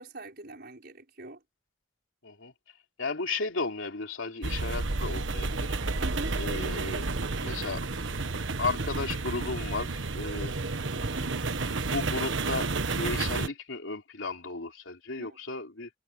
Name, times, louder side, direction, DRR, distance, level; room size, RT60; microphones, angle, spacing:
voice 1, 0.0-1.4 6.0-6.3 11.0-11.4 15.2-15.4, right 2 dB, 55° right, 5.6 m, -43 dB
voice 2, 3.0-5.7 6.4-7.0 7.4-7.8 8.6-10.5 11.9-15.9, left 3 dB, 90° left, 3.2 m, -34 dB
sound 1, 4.4-13.5, right 3 dB, 75° right, 1.3 m, -31 dB
head